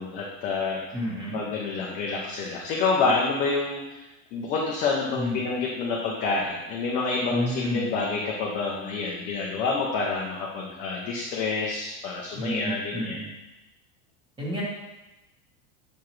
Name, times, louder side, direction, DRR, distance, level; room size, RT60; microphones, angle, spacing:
voice 1, 0.0-0.8 1.3-4.0 4.3-13.2, left 4 dB, 20° left, -3 dB, 0.3 m, -28 dB
voice 2, 0.9-1.4 5.1-5.4 7.3-7.9 12.3-13.3 14.4-14.6, left 1 dB, 10° right, -5 dB, 1.3 m, -30 dB
7.1 x 4.7 x 3.0 m, 1.0 s
supercardioid pair, 175°, 40 cm